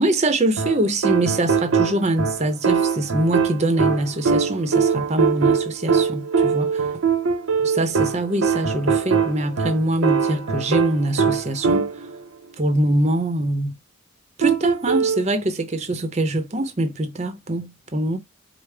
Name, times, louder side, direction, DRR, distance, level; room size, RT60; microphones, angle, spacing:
voice 1, 0.0-6.9 7.6-12.1 12.6-13.8 14.4-18.2, right 1 dB, 30° right, 0.6 m, -23 dB
sound 1, 0.6-12.2 14.4-15.2, right 5 dB, 80° right, 0.6 m, -22 dB
4.8 x 2.0 x 3.3 m
head